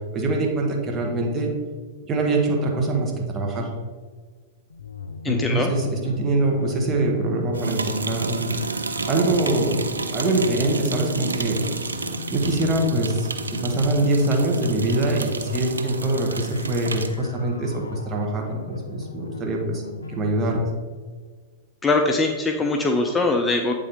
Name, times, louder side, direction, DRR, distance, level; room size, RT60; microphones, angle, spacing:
voice 1, 0.1-1.5 2.0-3.7 5.3-8.5 9.1-9.8 10.1-11.6 12.3-19.8 20.1-20.6, right 2 dB, 30° right, 1 dB, 1.4 m, -23 dB
sound 1, 4.7-20.7, left 4 dB, 85° left, 0.4 m, -38 dB
voice 2, 5.2-5.7 21.8-23.7, left 3 dB, 15° left, 2 dB, 0.6 m, -22 dB
sound 2, 7.5-17.2, right 3 dB, 85° right, 0.4 m, -31 dB
8.4 x 3.7 x 3.5 m, 1.5 s
hypercardioid pair, 100°, 0 cm